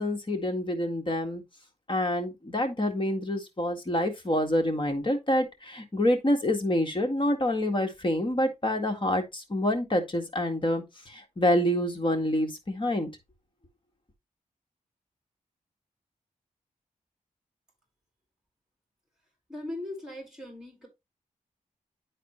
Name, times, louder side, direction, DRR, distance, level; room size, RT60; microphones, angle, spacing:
voice 1, 0.0-1.4 1.9-13.1, left 1 dB, 35° left, 1.9 m, -27 dB
voice 2, 19.5-20.9, left 1 dB, 5° right, 5.0 m, -39 dB
11.0 x 4.2 x 3.1 m
cardioid pair, 75°, 14 cm